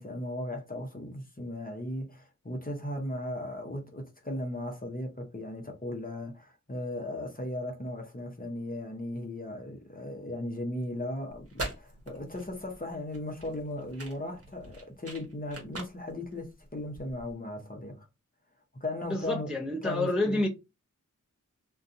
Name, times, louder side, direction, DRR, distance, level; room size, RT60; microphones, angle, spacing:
voice 1, 0.0-18.1 18.8-20.5, left 1 dB, 25° left, 0.8 m, -37 dB
sound 1, 11.3-17.3, right 2 dB, 45° right, 1.0 m, -43 dB
voice 2, 19.1-20.5, left 2 dB, 5° right, 0.6 m, -28 dB
2.6 x 2.3 x 2.5 m
wide cardioid pair, 45°, 32 cm